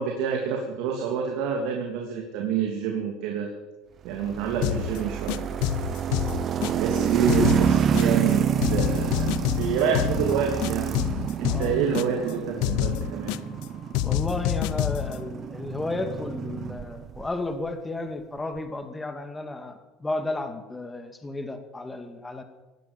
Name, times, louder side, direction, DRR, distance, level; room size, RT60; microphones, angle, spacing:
voice 1, 0.0-3.5 4.0-5.4 6.7-9.3 9.6-10.9 11.4-13.3, right 6 dB, 70° right, 1 dB, 2.9 m, -28 dB
sound 1, 4.2-17.3, right 8 dB, 40° right, 1.0 m, -28 dB
sound 2, 4.6-5.0 5.3-7.0 7.3-8.3 8.6-10.3 10.6-12.3 12.6-13.7 13.9-15.2, left 15 dB, 70° left, 0.6 m, -28 dB
voice 2, 14.0-22.4, left 2 dB, 10° left, 7 dB, 2.1 m, -33 dB
18.0 x 11.5 x 7.0 m, 1.1 s
supercardioid pair, 120°, 0 cm